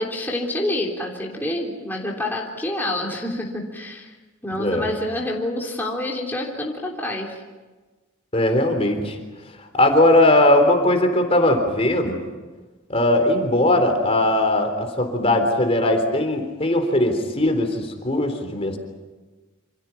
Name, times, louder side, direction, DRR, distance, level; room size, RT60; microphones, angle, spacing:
voice 1, 0.0-4.1 4.4-7.4, left 1 dB, 10° left, -2 dB, 3.5 m, -27 dB
voice 2, 4.5-4.9 8.3-9.2 9.7-12.2 12.9-18.8, left 1 dB, 30° left, 4 dB, 3.7 m, -19 dB
28.5 x 27.5 x 5.9 m, 1.3 s
head